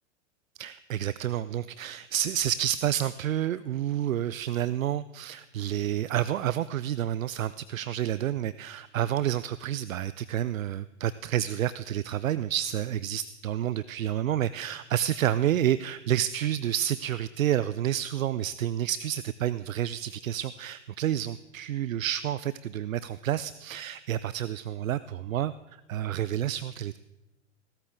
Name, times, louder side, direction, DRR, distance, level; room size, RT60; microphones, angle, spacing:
voice 1, 0.6-25.5 25.9-27.0, right 11 dB, 85° right, 16 dB, 0.5 m, -29 dB
16.5 x 13.5 x 3.7 m, 1.0 s
hypercardioid pair, 105°, 39 cm